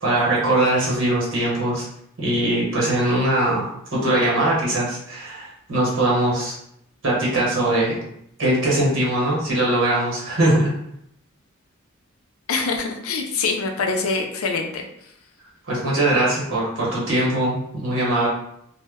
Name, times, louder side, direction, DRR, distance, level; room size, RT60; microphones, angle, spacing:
voice 1, 0.0-1.9 2.2-6.5 7.0-8.0 8.4-10.7 15.7-18.3, right 1 dB, 65° right, -4 dB, 1.0 m, -21 dB
voice 2, 12.5-14.8, left 4 dB, 90° left, 3 dB, 0.5 m, -24 dB
2.1 x 2.1 x 3.4 m, 0.73 s
head